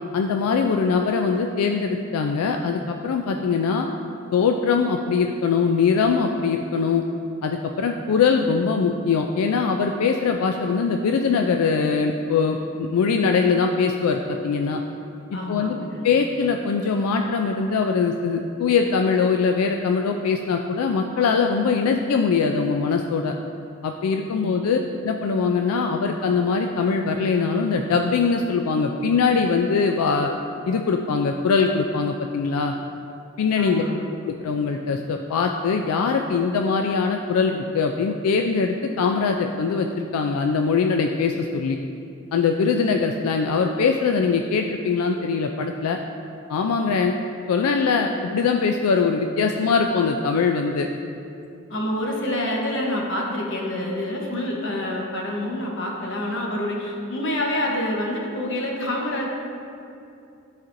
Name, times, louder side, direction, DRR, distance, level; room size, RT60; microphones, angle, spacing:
voice 1, 0.1-3.9 4.3-7.0 7.4-14.8 15.5-15.8 16.0-23.3 23.8-30.3 30.7-32.7 33.4-33.8 34.2-41.8 42.3-46.0 46.5-47.2 47.5-50.9, left 5 dB, 90° left, 4 dB, 0.3 m, -22 dB
voice 2, 15.3-16.0 24.3-24.6 33.6-34.0 51.7-59.3, left 1 dB, 55° left, -1 dB, 1.0 m, -27 dB
12.5 x 4.2 x 2.6 m, 2.6 s
head